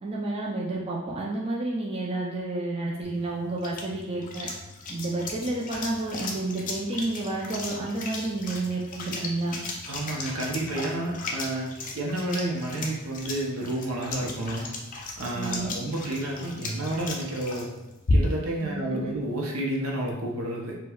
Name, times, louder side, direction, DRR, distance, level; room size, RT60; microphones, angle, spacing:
voice 1, 0.0-4.5 4.9-9.6 15.3-15.8 18.6-19.0, right 2 dB, 25° right, -4 dB, 0.4 m, -30 dB
sound 1, 3.0-18.6, left 2 dB, 40° left, 0.4 m, -35 dB
voice 2, 9.9-11.7 11.9-14.7 15.2-17.7 18.1-20.8, right 1 dB, 70° right, -1 dB, 0.7 m, -30 dB
4.3 x 2.2 x 2.3 m, 0.95 s
head